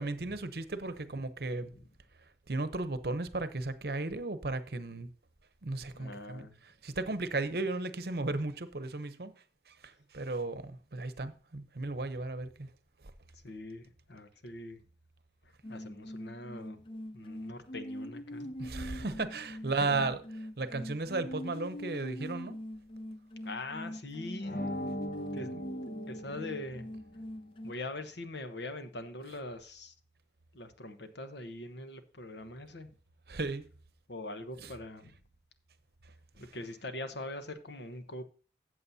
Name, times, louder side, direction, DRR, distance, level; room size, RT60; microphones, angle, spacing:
voice 1, 0.0-1.7 2.5-5.1 5.6-6.4 6.8-9.3 9.7-12.7 18.6-20.2 20.6-22.6 33.3-33.6 34.6-34.7, right 3 dB, 60° right, 0.8 m, -35 dB
voice 2, 5.9-6.6 13.3-14.8 15.7-16.8 17.1-18.6 19.8-20.0 23.4-24.6 25.3-25.5 26.1-26.9 27.6-29.9 30.5-32.9 34.1-35.1 36.3-38.2, left 2 dB, 85° left, 1.1 m, -42 dB
sound 1, 15.6-27.7, equal, 30° left, 0.4 m, -43 dB
sound 2, 24.4-27.1, equal, 60° left, 1.0 m, -40 dB
14.0 x 7.6 x 2.8 m
head